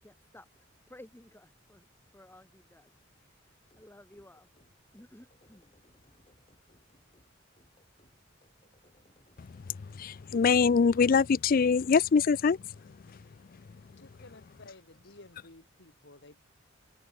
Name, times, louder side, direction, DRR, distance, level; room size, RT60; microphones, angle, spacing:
voice 1, 0.0-1.9 2.1-4.5 4.9-5.7, left 1 dB, 10° left, 1.9 m, -55 dB
sound 1, 3.7-10.5, left 1 dB, 30° left, 6.8 m, -66 dB
voice 2, 10.0-12.6, left 5 dB, 45° left, 0.4 m, -23 dB
voice 3, 13.9-16.5, left 2 dB, 60° left, 2.7 m, -54 dB
head